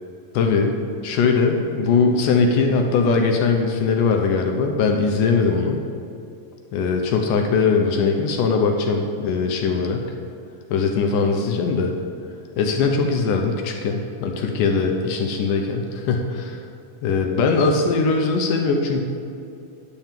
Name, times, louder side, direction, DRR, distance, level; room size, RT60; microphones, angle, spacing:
voice 1, 0.3-5.8 6.7-10.0 10.7-11.9 12.6-16.6 17.0-19.0, left 4 dB, 75° left, 3 dB, 2.1 m, -20 dB
10.5 x 4.5 x 7.3 m, 2.5 s
omnidirectional pair, 4.2 m